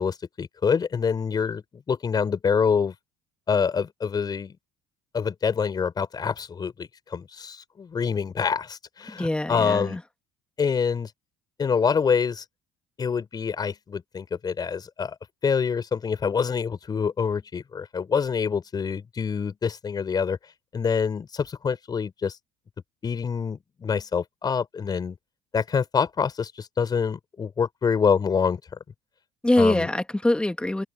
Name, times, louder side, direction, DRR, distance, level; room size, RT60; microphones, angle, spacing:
voice 1, 0.0-2.9 3.5-4.6 5.1-10.0 10.6-11.1 11.6-12.4 13.0-15.2 15.4-20.4 20.7-22.4 23.0-25.2 25.5-28.6 29.6-29.9, left 6 dB, 35° left, 5.2 m, -26 dB
voice 2, 9.1-10.0 29.4-30.8, left 1 dB, 10° left, 2.8 m, -23 dB
hypercardioid pair, 60°, 12 cm